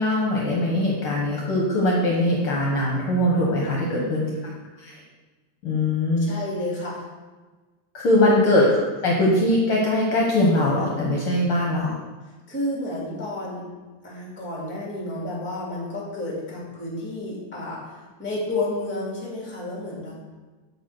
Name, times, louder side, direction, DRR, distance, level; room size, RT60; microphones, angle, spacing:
voice 1, 0.0-4.3 4.8-5.0 5.6-6.3 7.9-11.9, left 1 dB, 55° left, -3 dB, 1.8 m, -21 dB
voice 2, 3.8-4.3 6.2-7.0 8.2-8.4 12.5-13.7 14.0-20.1, left 2 dB, 5° left, -4 dB, 1.5 m, -31 dB
8.2 x 4.3 x 6.2 m, 1.3 s
omnidirectional pair, 3.4 m